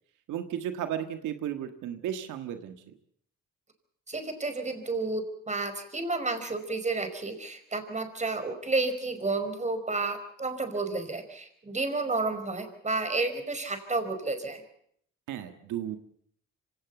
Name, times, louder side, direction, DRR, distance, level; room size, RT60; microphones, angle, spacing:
voice 1, 0.3-3.0 15.3-16.0, right 10 dB, 85° right, 8 dB, 1.6 m, -34 dB
voice 2, 4.1-14.6, right 3 dB, 25° right, 8 dB, 5.0 m, -31 dB
25.5 x 18.0 x 7.1 m, 0.66 s
cardioid pair, 90°, 30 cm